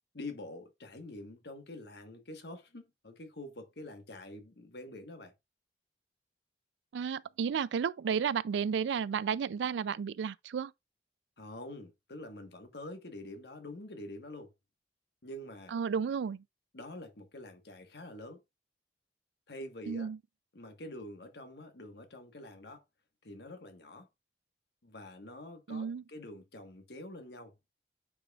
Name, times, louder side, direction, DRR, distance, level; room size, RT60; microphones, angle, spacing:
voice 1, 0.1-5.3 11.4-14.5 15.2-15.7 16.7-18.4 19.5-20.1 20.5-22.8 23.2-24.1 24.8-27.5, left 1 dB, 70° left, 1.3 m, -46 dB
voice 2, 6.9-10.7 15.7-16.4 19.9-20.2 25.7-26.0, right 7 dB, 85° right, 0.3 m, -32 dB
8.7 x 5.0 x 2.4 m
head